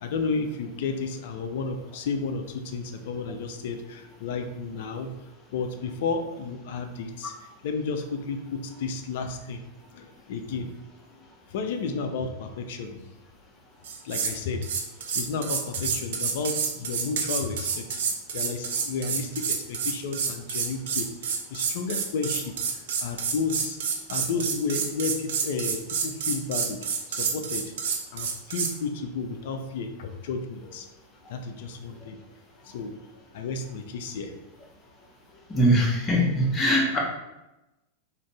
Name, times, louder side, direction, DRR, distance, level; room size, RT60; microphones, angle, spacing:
voice 1, 0.0-7.3 7.6-9.6 9.9-10.7 11.5-13.1 14.0-14.7 15.1-18.0 18.3-22.5 23.0-23.8 24.1-27.6 28.1-30.9 31.3-32.2 32.6-32.9 33.3-34.3, left 4 dB, 55° left, 6 dB, 0.4 m, -32 dB
sound 1, 13.8-14.4 14.6-28.7, right 6 dB, 60° right, 0.3 m, -29 dB
voice 2, 35.5-37.0, equal, 20° left, -2 dB, 0.8 m, -21 dB
2.5 x 2.5 x 3.1 m, 0.97 s
figure-of-eight pair, 90°, 0 cm